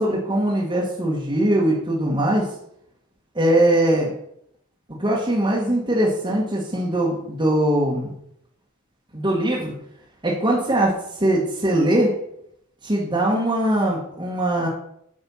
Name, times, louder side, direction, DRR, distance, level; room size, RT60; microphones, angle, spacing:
voice 1, 0.0-2.5 3.3-4.1 5.0-8.1 9.1-9.7 10.2-12.1 12.8-14.7, right 1 dB, 25° right, -4 dB, 1.5 m, -21 dB
8.4 x 5.5 x 5.7 m, 0.72 s
head